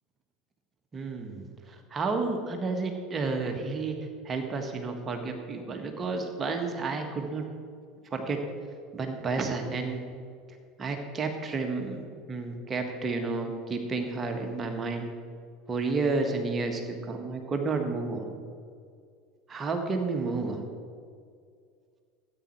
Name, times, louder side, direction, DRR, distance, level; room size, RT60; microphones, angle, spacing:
voice 1, 0.9-4.0 4.2-7.5 8.1-8.4 8.9-10.0 10.8-15.1 15.7-18.3 19.5-20.6, right 3 dB, 30° right, 4 dB, 1.5 m, -31 dB
13.5 x 9.0 x 4.4 m, 2.2 s
hypercardioid pair, 75°, 0 cm